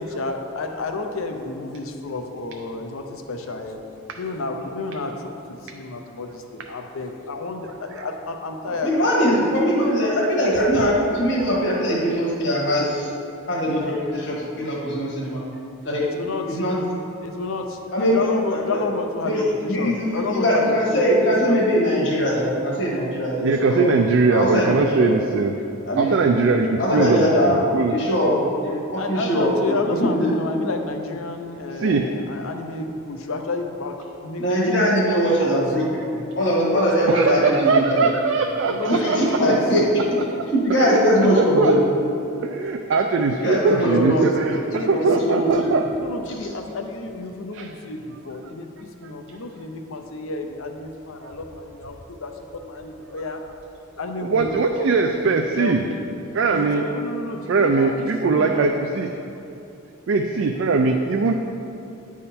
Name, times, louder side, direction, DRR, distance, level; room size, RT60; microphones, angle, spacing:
voice 1, 0.0-9.5 15.9-16.8 17.2-21.6 28.9-35.6 36.4-37.5 38.6-39.6 43.4-44.3 44.7-45.5 46.0-53.4 53.8-54.9 55.3-56.0 56.5-58.8, left 3 dB, 75° left, 5 dB, 0.6 m, -31 dB
voice 2, 8.8-13.1 13.5-15.4 15.8-16.0 16.5-16.8 17.9-18.6 19.2-19.4 19.7-23.9 24.3-25.1 25.9-26.2 26.8-27.6 27.9-30.3 34.4-38.0 38.9-39.8 40.5-41.8 43.4-44.5 44.9-45.7, equal, 55° left, -4 dB, 1.3 m, -21 dB
voice 3, 23.4-25.6 26.0-28.0 28.9-29.0 31.8-32.1 37.1-39.6 40.3-41.0 41.4-42.0 42.4-45.8 47.5-47.7 54.3-55.8 56.3-56.9 57.5-59.1 60.1-61.3, right 4 dB, 60° right, 3 dB, 0.3 m, -21 dB
9.6 x 3.6 x 4.3 m, 2.7 s
head